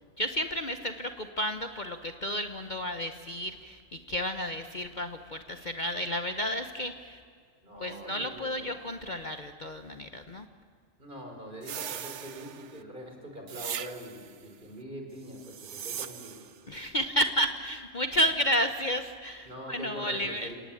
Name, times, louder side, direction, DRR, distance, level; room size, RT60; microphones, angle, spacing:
voice 1, 0.2-7.2 7.8-10.5 16.7-20.5, equal, 40° left, 8 dB, 1.0 m, -31 dB
voice 2, 7.6-8.8 11.0-16.5 18.2-18.3 19.4-20.6, equal, 40° right, 2 dB, 4.3 m, -43 dB
sound 1, 11.6-12.8 13.5-14.4 15.3-16.6, right 9 dB, 65° right, 1.1 m, -39 dB
28.5 x 18.0 x 8.7 m, 2.2 s
omnidirectional pair, 1.4 m